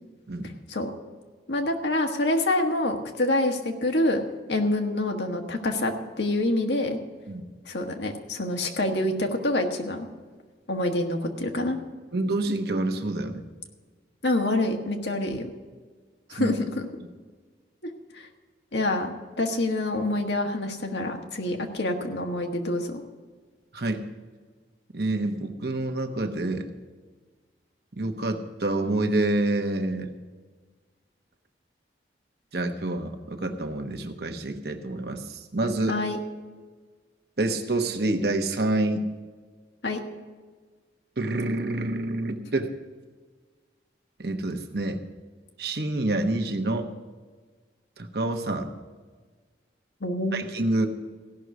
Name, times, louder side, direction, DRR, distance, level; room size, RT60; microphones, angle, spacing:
voice 1, 1.5-4.2 4.5-7.0 7.7-10.1 10.7-11.8 14.2-15.5 16.3-16.9 18.1-18.3 18.7-23.0 35.9-36.2 39.8-40.0 50.0-50.4, left 1 dB, 80° left, 3 dB, 1.5 m, -26 dB
voice 2, 12.1-13.5 16.4-16.5 23.7-24.0 24.9-26.6 27.9-30.1 32.5-36.0 37.4-39.1 41.2-42.7 44.2-45.0 45.6-46.9 48.0-48.7 50.3-50.9, right 2 dB, 65° right, 6 dB, 1.1 m, -27 dB
15.5 x 6.3 x 8.1 m, 1.4 s
head